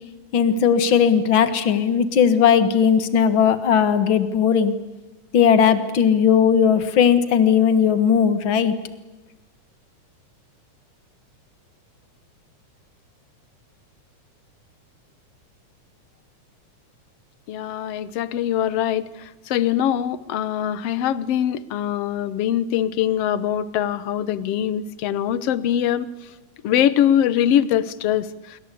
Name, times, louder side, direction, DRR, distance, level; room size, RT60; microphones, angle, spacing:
voice 1, 0.3-4.7 5.3-8.7, left 7 dB, 45° left, 11 dB, 2.0 m, -17 dB
voice 2, 17.5-19.0 19.5-26.1 26.6-28.3, left 10 dB, 65° left, 16 dB, 1.8 m, -22 dB
26.5 x 23.5 x 8.5 m, 1.1 s
omnidirectional pair, 3.5 m